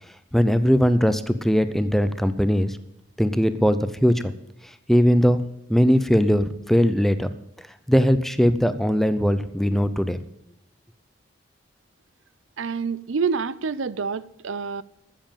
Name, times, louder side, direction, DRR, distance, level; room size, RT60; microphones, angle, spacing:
voice 1, 0.3-2.8 3.2-4.3 4.9-5.4 5.7-7.3 7.9-10.2, equal, ahead, 0.5 m, -20 dB
voice 2, 12.6-14.8, right 5 dB, 90° right, 0.5 m, -27 dB
14.0 x 7.5 x 7.2 m
head